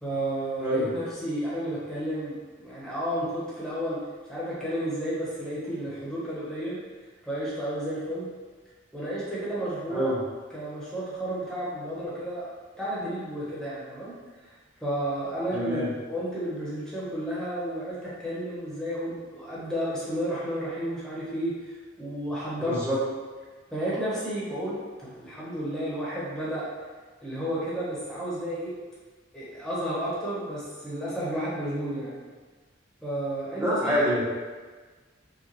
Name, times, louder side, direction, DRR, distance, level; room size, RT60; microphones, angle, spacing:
voice 1, 0.0-4.0 4.3-6.8 7.2-8.3 8.9-10.1 10.5-12.5 12.8-14.1 14.8-22.8 23.7-26.7 27.2-28.7 29.3-32.2 33.0-34.0, right 1 dB, 5° left, -9 dB, 1.2 m, -32 dB
voice 2, 15.5-15.9 22.7-23.0 33.6-34.2, equal, 10° right, -8 dB, 1.1 m, -25 dB
4.9 x 2.5 x 3.0 m, 1.4 s
head